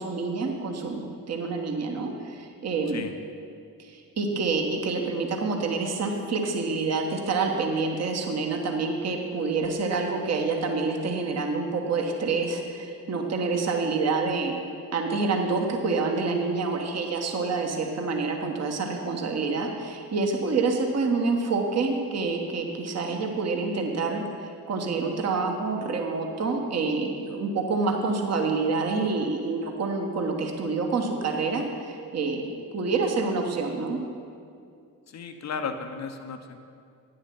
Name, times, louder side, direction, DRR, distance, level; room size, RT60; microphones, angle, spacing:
voice 1, 0.0-3.0 3.8-14.5 14.9-34.0, right 4 dB, 30° right, 2 dB, 1.2 m, -27 dB
voice 2, 35.1-36.6, left 5 dB, 35° left, 7 dB, 0.8 m, -34 dB
9.3 x 6.6 x 6.0 m, 2.4 s
figure-of-eight pair, 45°, 48 cm